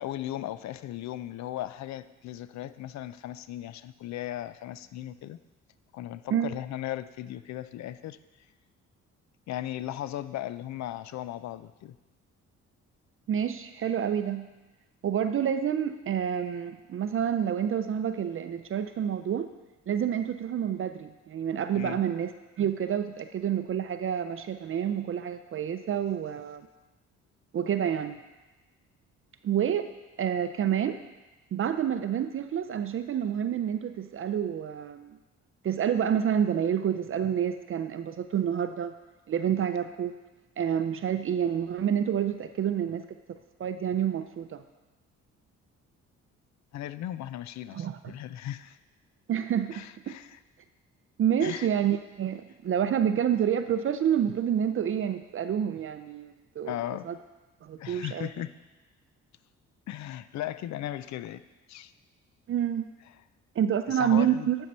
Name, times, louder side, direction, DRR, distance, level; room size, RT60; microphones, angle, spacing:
voice 1, 0.0-5.4 5.9-8.2 9.5-12.0 21.7-22.0 46.7-48.8 49.7-50.4 51.4-51.7 56.7-57.0 57.8-58.5 59.9-61.4 61.7-61.9 63.9-64.5, left 13 dB, 65° left, 14 dB, 0.5 m, -37 dB
voice 2, 13.3-14.5 15.0-19.5 19.9-22.3 22.6-26.7 27.5-28.2 29.4-29.9 30.2-31.0 31.5-35.2 35.6-38.9 39.3-40.1 40.6-44.6 47.7-48.1 49.3-50.2 51.2-56.8 57.0-57.1 57.6-58.3 62.5-62.9 63.6-64.6, right 9 dB, 45° right, 9 dB, 0.5 m, -28 dB
10.5 x 4.5 x 5.4 m, 1.1 s
cardioid pair, 90°, 30 cm